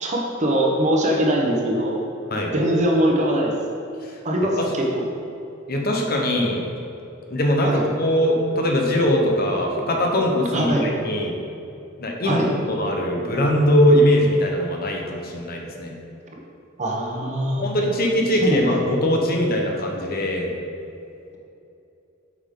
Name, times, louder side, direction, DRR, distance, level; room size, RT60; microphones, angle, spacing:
voice 1, 0.0-2.0 2.5-3.5 4.2-4.9 7.6-7.8 10.5-10.9 12.2-12.5 16.8-17.7 18.4-18.6, right 1 dB, 35° right, -1 dB, 1.0 m, -21 dB
voice 2, 5.7-6.7 7.3-11.4 12.0-12.4 12.7-15.9 17.6-20.5, equal, 50° left, 1 dB, 1.0 m, -21 dB
8.0 x 5.3 x 3.8 m, 2.7 s
head